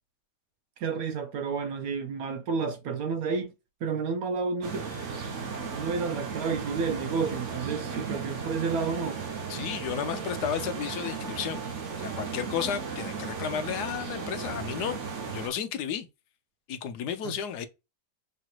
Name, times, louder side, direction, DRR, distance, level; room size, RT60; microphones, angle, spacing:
voice 1, 0.8-3.5 3.8-4.9 5.7-9.2 17.2-17.4, right 5 dB, 70° right, 0.9 m, -30 dB
sound 1, 4.6-15.5, right 5 dB, 50° right, 1.1 m, -35 dB
voice 2, 9.5-11.6 12.0-15.0 15.3-16.1 16.7-17.7, left 8 dB, 70° left, 1.1 m, -33 dB
5.7 x 3.0 x 2.4 m
omnidirectional pair, 1.9 m